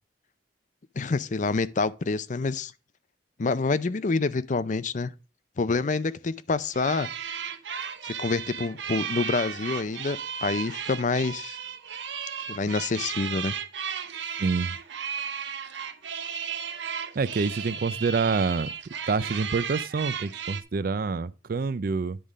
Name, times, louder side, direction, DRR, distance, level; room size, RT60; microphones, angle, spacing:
voice 1, 1.0-2.7 3.4-5.1 5.6-7.1 8.0-11.6 12.5-13.5, left 3 dB, 45° left, 0.5 m, -27 dB
sound 1, 6.7-20.6, right 7 dB, 85° right, 0.8 m, -35 dB
voice 2, 14.4-14.8 17.2-18.7 19.1-22.2, right 4 dB, 55° right, 0.4 m, -27 dB
10.0 x 3.7 x 6.3 m
head